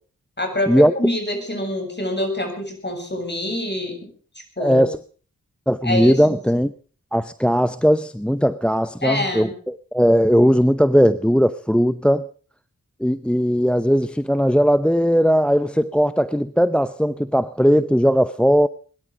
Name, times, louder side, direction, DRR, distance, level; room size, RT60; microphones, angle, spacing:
voice 1, 0.4-4.1 4.6-4.9 5.8-6.3 9.0-9.5, left 1 dB, 30° left, 7.7 m, -26 dB
voice 2, 4.6-5.0 5.7-6.7 7.1-12.3 13.0-18.7, equal, 5° left, 0.7 m, -18 dB
22.0 x 12.0 x 5.0 m
cardioid pair, 45°, 35 cm